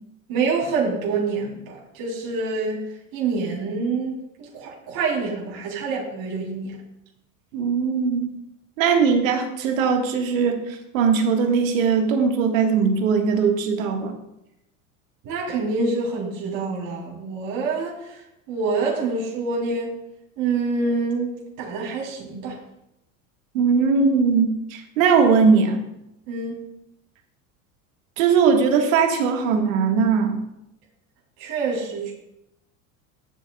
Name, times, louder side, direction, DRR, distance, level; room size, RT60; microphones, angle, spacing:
voice 1, 0.3-2.8 3.1-6.7 15.2-19.9 20.4-21.3 21.6-22.6 26.3-26.6 31.4-32.1, right 4 dB, 55° right, -4 dB, 3.5 m, -26 dB
voice 2, 7.5-8.3 8.8-14.1 23.5-25.8 28.2-30.4, right 5 dB, 75° right, 4 dB, 1.7 m, -20 dB
13.0 x 7.3 x 2.3 m, 0.84 s
hypercardioid pair, 85°, 40 cm